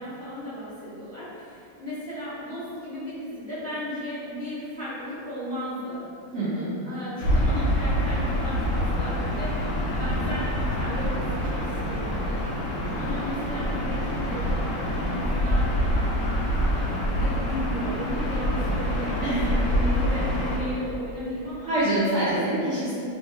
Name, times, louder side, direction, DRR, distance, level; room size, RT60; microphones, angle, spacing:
voice 1, 0.0-6.0 6.8-9.5 9.8-12.4 13.0-15.8 16.6-21.7, equal, 5° left, -15 dB, 0.8 m, -35 dB
voice 2, 6.3-6.8 19.2-19.5 21.7-22.9, right 1 dB, 90° right, -10 dB, 0.6 m, -25 dB
Gull seagull / Ocean, 7.2-20.6, equal, 75° left, 1.2 m, -26 dB
2.9 x 2.3 x 2.6 m, 2.6 s
omnidirectional pair, 1.9 m